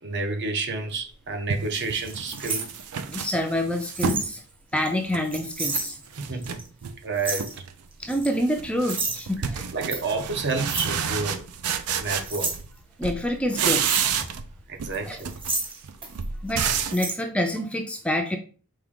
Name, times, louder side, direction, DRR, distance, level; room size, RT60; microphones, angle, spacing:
voice 1, 0.0-2.7 6.2-6.6 7.0-7.5 9.7-11.5 11.9-12.5 14.7-15.3, right 3 dB, 50° right, 0.7 m, -30 dB
sound 1, 0.8-0.9 1.5-4.3 4.7-5.8 6.1-7.0 7.3-7.7 8.0-12.8 13.0-14.5 14.8-17.0, right 7 dB, 85° right, 0.5 m, -30 dB
sound 2, 2.0-3.3 4.0-4.3 4.8-6.0 6.4-6.7 7.2-7.6 8.1-8.3 8.9-9.3 9.9-10.0 10.7-10.9 11.3-11.4 11.9-12.6 13.7-14.1 14.9-16.2 16.5-16.6 16.9-17.2, right 3 dB, 25° right, 0.9 m, -31 dB
voice 2, 3.1-4.4 4.7-6.0 8.0-9.6 13.0-13.9 15.1-15.2 16.4-18.4, left 1 dB, 5° left, 0.4 m, -27 dB
4.8 x 2.9 x 3.6 m
head